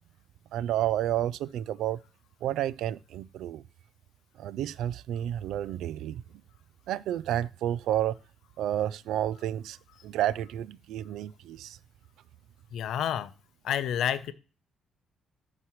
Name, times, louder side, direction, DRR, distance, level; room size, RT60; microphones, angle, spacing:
voice 1, 0.5-2.0 2.4-3.6 4.4-6.2 6.9-8.2 8.6-9.8 10.0-11.8, right 12 dB, 85° right, 0.3 m, -30 dB
voice 2, 12.7-13.3 13.6-14.3, left 10 dB, 75° left, 0.6 m, -29 dB
11.5 x 4.8 x 3.1 m
cardioid pair, 90°, 0 cm